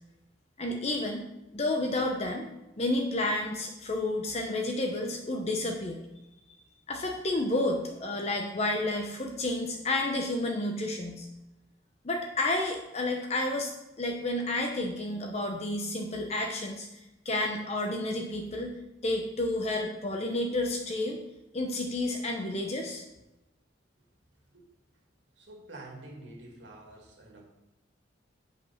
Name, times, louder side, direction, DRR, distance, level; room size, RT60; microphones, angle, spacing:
voice 1, 0.6-1.2 1.5-2.5 2.8-6.0 6.9-11.3 12.0-13.7 14.0-16.9 17.2-18.8 19.0-21.2 21.5-23.0, left 2 dB, 35° left, 2 dB, 0.8 m, -30 dB
voice 2, 25.4-27.4, right 2 dB, 75° right, 0 dB, 2.2 m, -47 dB
7.8 x 5.2 x 5.7 m, 0.96 s
head